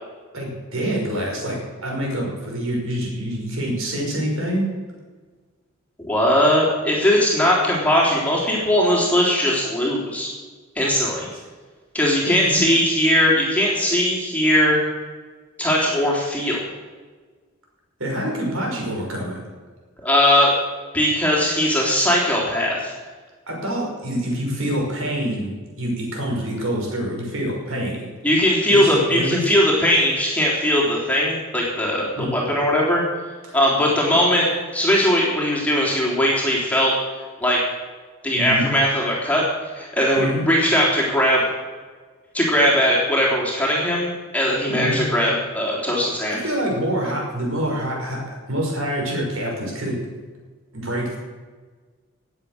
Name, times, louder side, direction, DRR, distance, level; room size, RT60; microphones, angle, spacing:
voice 1, 0.3-4.7 12.3-12.6 18.0-19.4 23.5-28.1 28.7-29.4 32.2-32.3 33.5-33.6 38.3-38.7 40.2-40.4 44.7-45.0 46.4-50.0 50.7-51.2, equal, 70° right, -1 dB, 5.3 m, -26 dB
voice 2, 6.0-10.3 10.8-11.3 11.9-14.8 15.6-16.6 20.0-20.5 20.9-22.9 28.2-33.0 33.5-34.5 34.7-36.9 37.4-37.6 38.2-39.4 39.7-41.4 42.3-46.4, equal, 5° left, -4 dB, 3.5 m, -19 dB
18.5 x 8.1 x 6.7 m, 1.4 s
head